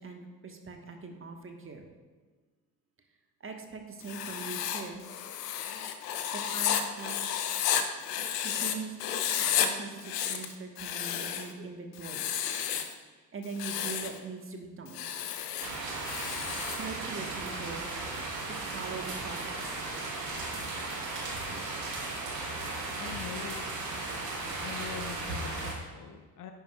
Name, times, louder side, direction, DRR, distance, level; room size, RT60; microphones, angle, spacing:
voice 1, 0.0-1.9 3.4-5.0 6.3-7.4 8.4-12.3 13.3-15.1 16.8-17.9 18.4-19.8, right 4 dB, 25° right, 4 dB, 1.2 m, -42 dB
Writing, 4.0-8.7 9.0-9.7 10.0-11.5 12.0-12.9 13.4-14.2 14.9-16.8, left 9 dB, 75° left, 0.7 m, -32 dB
sound 1, 15.6-25.7, right 2 dB, 80° right, 1.2 m, -36 dB
voice 2, 23.0-23.7 24.0-24.1 24.5-26.5, left 7 dB, 40° left, 6 dB, 0.8 m, -43 dB
10.5 x 9.1 x 2.3 m, 1.4 s
figure-of-eight pair, 45°, 49 cm